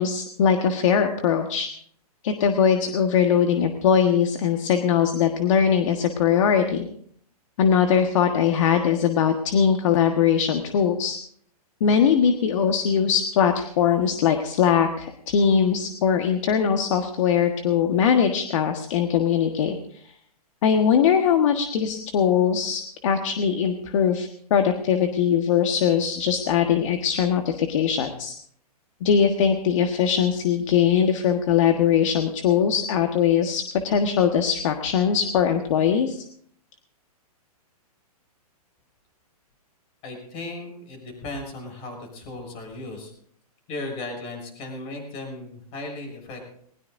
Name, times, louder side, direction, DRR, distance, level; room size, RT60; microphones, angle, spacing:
voice 1, 0.0-1.7 2.2-6.9 7.6-11.2 11.8-20.1 20.6-28.3 29.0-36.2, left 7 dB, 55° left, 5 dB, 1.5 m, -21 dB
voice 2, 40.0-43.1 43.7-46.5, left 2 dB, 30° left, 3 dB, 6.8 m, -36 dB
20.5 x 19.5 x 2.7 m, 0.63 s
hypercardioid pair, 150°, 20 cm